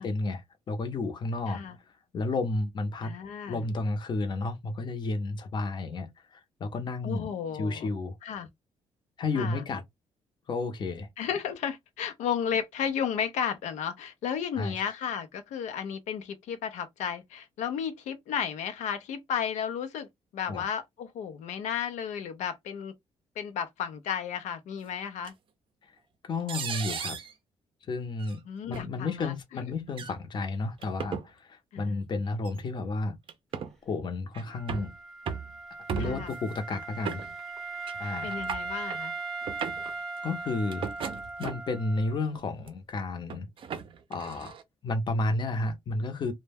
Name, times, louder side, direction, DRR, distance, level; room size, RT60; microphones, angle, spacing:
voice 1, 0.0-1.6 2.1-3.1 3.5-7.3 7.5-8.2 9.2-9.8 10.5-11.1 14.6-14.7 20.5-20.6 26.2-27.2 27.9-28.4 28.7-33.2 33.8-34.9 36.0-37.2 38.0-38.3 40.2-40.9 41.4-43.5 44.1-44.5 44.8-46.3, left 3 dB, 40° left, 0.6 m, -32 dB
voice 2, 3.0-3.6 7.0-7.9 8.2-8.5 9.4-9.6 11.2-20.1 20.3-22.9 23.4-25.3 28.5-29.3 31.7-32.0 36.0-36.3 38.0-39.1, left 8 dB, 85° left, 0.5 m, -33 dB
sound 1, 25.2-25.3 26.5-27.3 28.2-28.3 28.7-28.9 29.9-30.1 30.8-31.3 32.4-32.6 33.3-33.7 34.3-34.9 35.3-35.5 35.9-36.4 37.0-37.6 37.9-38.0 38.2-39.0 39.4-39.9 40.7-41.8 42.3-42.7 43.3-44.6, right 6 dB, 45° right, 0.5 m, -36 dB
Wind instrument woodwind instrument, 34.5-42.2, right 3 dB, ahead, 0.7 m, -38 dB
2.1 x 2.1 x 3.3 m
cardioid pair, 130°, 12 cm